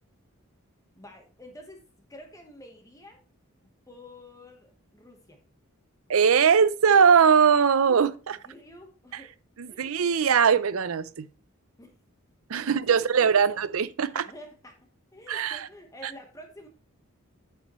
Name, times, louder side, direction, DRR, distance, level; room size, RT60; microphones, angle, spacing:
voice 1, 1.0-1.8 2.1-3.2 3.6-5.4 8.4-9.3 9.7-9.9 11.8-11.9 12.6-13.6 14.1-14.8 15.1-16.7, left 1 dB, 15° left, 1.2 m, -48 dB
voice 2, 6.1-8.4 9.1-9.2 9.6-11.3 12.5-14.2 15.3-15.7, right 6 dB, 75° right, 0.5 m, -21 dB
9.2 x 8.1 x 3.1 m
head